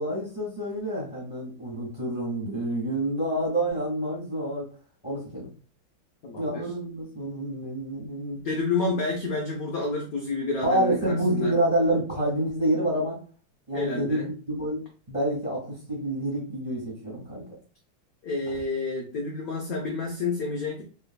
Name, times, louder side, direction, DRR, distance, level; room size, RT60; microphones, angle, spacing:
voice 1, 0.0-4.7 5.0-5.5 6.4-8.4 10.6-13.2 13.7-17.4 18.5-18.6, right 1 dB, 5° right, -7 dB, 1.4 m, -28 dB
voice 2, 6.2-6.6 8.3-11.5 13.7-14.3 18.2-20.8, left 3 dB, 80° left, 0 dB, 0.8 m, -29 dB
3.3 x 3.3 x 2.2 m, 0.37 s
omnidirectional pair, 2.3 m